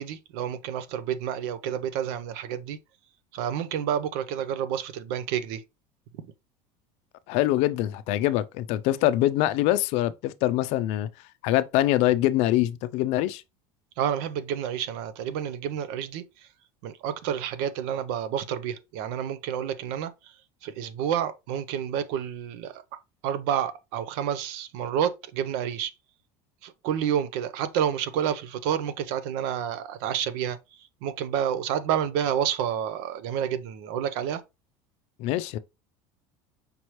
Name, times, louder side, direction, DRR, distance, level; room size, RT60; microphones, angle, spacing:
voice 1, 0.0-2.8 3.3-5.6 14.0-16.5 16.8-20.3 20.6-22.8 23.2-25.9 26.6-30.6 31.0-34.4, right 9 dB, 75° right, 0.6 m, -29 dB
voice 2, 7.3-11.1 11.4-13.4 35.2-35.6, left 14 dB, 65° left, 0.4 m, -24 dB
5.2 x 3.1 x 2.9 m
supercardioid pair, 115°, 12 cm